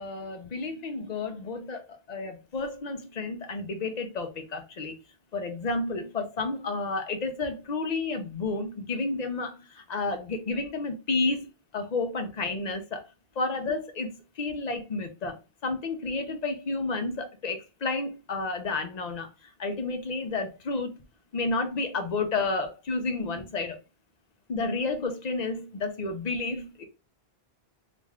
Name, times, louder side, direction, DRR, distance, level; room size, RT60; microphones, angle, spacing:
voice 1, 0.0-5.0 5.3-13.0 13.4-21.0 21.3-23.8 24.5-26.9, left 3 dB, 50° left, 0.7 m, -31 dB
3.2 x 2.5 x 3.5 m
omnidirectional pair, 1.0 m